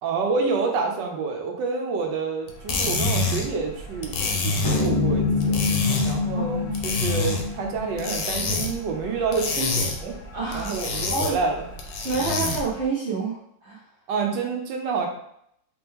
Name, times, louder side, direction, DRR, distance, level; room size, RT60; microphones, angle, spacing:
voice 1, 0.0-5.7 6.0-10.1 10.5-11.6 14.1-15.1, right 4 dB, 75° right, 2 dB, 1.5 m, -28 dB
sound 1, 2.5-12.8, left 3 dB, 75° left, 1.4 m, -28 dB
sound 2, 4.6-9.3, left 4 dB, 35° left, 0.3 m, -26 dB
voice 2, 6.3-6.7 10.3-10.7 11.1-11.4 12.0-13.8, right 4 dB, 55° right, -4 dB, 0.8 m, -28 dB
4.2 x 3.0 x 3.5 m, 0.72 s
omnidirectional pair, 2.0 m